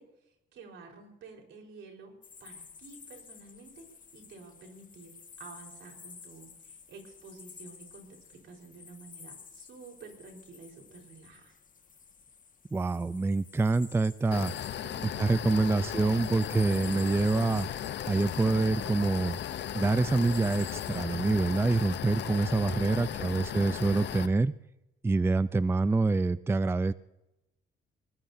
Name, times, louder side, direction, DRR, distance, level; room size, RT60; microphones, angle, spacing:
voice 1, 0.0-2.1 2.4-3.8 4.1-11.6 14.8-15.6 15.9-16.3 22.8-23.6, right 4 dB, 80° right, 1 dB, 4.3 m, -51 dB
sound 1, 2.2-21.0, left 6 dB, 40° left, 1.6 m, -52 dB
voice 2, 12.7-14.5 15.2-17.7 18.1-19.4 19.7-24.5 25.0-26.9, right 3 dB, 10° right, 16 dB, 0.4 m, -26 dB
sound 2, 14.3-24.3, left 10 dB, 60° left, 0.7 m, -36 dB
20.5 x 20.0 x 2.7 m, 0.92 s
cardioid pair, 90°, 20 cm